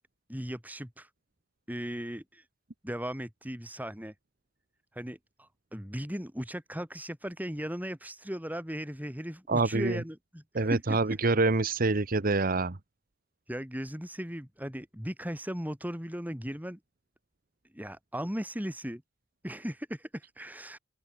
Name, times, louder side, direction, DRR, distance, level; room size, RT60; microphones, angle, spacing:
voice 1, 0.3-1.1 1.7-2.5 2.8-4.1 4.9-11.2 13.5-16.8 17.7-19.0 19.4-20.8, equal, 10° right, 4.6 m, -37 dB
voice 2, 9.5-10.0 10.5-12.8, right 3 dB, 45° right, 1.0 m, -26 dB
open air
head